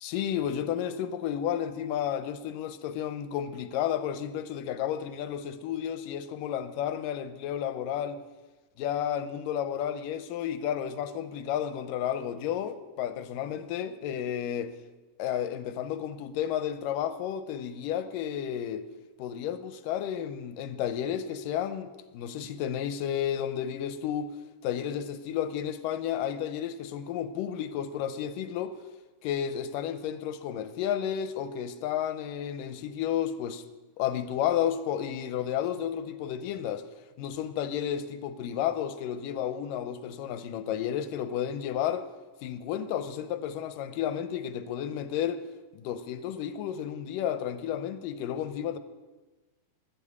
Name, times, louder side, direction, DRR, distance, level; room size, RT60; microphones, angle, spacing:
voice 1, 0.0-8.2 8.8-14.7 15.2-18.8 19.2-24.3 24.6-28.8 29.2-33.6 34.0-36.8 37.2-42.1 42.4-45.4 45.7-48.8, left 9 dB, 85° left, 2.5 m, -32 dB
12.5 x 11.5 x 8.4 m
omnidirectional pair, 3.8 m